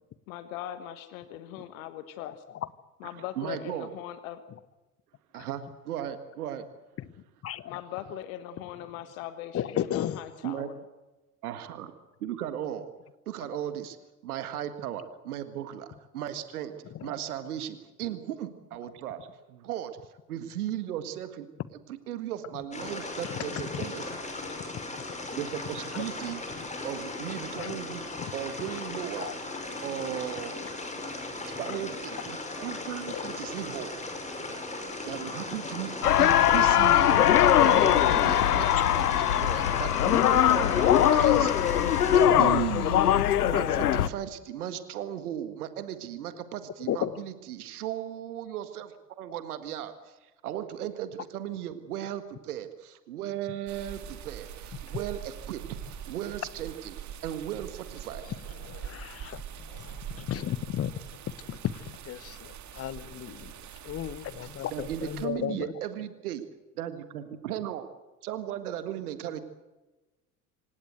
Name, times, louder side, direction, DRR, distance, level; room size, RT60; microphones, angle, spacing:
voice 1, 0.3-2.4 3.0-4.4 7.6-10.8, left 11 dB, 60° left, 12 dB, 1.5 m, -40 dB
voice 2, 3.1-3.9 5.3-6.7 10.4-10.7 11.4-11.9 12.2-12.9 13.3-14.0 14.2-16.8 17.0-19.9 20.3-21.5 22.1-24.1 25.4-26.4 26.8-28.0 28.3-29.3 29.8-30.5 31.4-33.9 35.0-35.9 36.2-41.5 42.1-49.9 50.4-58.3 64.4-66.4 66.8-67.9 68.2-69.4, right 11 dB, 65° right, 11 dB, 1.8 m, -36 dB
voice 3, 7.4-7.8 9.5-10.3 16.9-17.1 23.2-23.9 24.7-24.8 25.9-26.0 26.6-26.7 27.6-27.8 28.2-28.3 28.7-28.8 29.2-29.6 33.1-33.3 37.5-37.7 38.3-38.5 38.8-38.9 39.4-39.9 41.1-41.3 46.9-47.2 58.2-60.9 61.3-63.5 63.8-65.7, left 11 dB, 30° left, 18 dB, 1.1 m, -35 dB
sound 1, 22.7-42.3, left 2 dB, 15° left, 5.6 m, -37 dB
sound 2, 36.0-44.1, left 11 dB, 75° left, 1.0 m, -21 dB
sound 3, 53.7-65.3, right 9 dB, 35° right, 2.3 m, -43 dB
27.0 x 17.0 x 8.0 m, 1.1 s
figure-of-eight pair, 70°, 47 cm